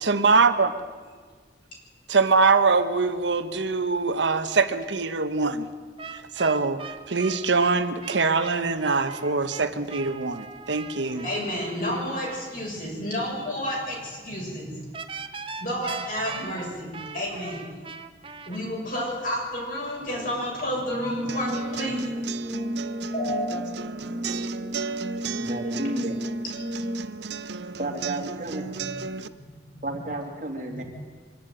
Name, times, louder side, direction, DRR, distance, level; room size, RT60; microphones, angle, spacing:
voice 1, 0.0-0.7 2.1-5.7 6.1-11.3, right 4 dB, 90° right, 9 dB, 1.2 m, -23 dB
sound 1, 6.0-12.5 14.9-18.6, right 5 dB, 30° right, 0.8 m, -40 dB
voice 2, 11.2-14.8 15.6-17.7 18.5-22.1 23.1-23.5 29.2-29.4 29.7-29.9 30.7-30.8, equal, 50° left, -3 dB, 7.2 m, -30 dB
Brass instrument, 20.9-27.3, equal, 10° right, 2.3 m, -33 dB
sound 2, 21.3-29.3, right 5 dB, 70° right, 0.7 m, -35 dB
voice 3, 25.3-26.2 27.8-28.6 29.8-30.8, right 1 dB, 45° right, 1 dB, 2.9 m, -32 dB
24.5 x 11.5 x 9.2 m, 1.5 s
head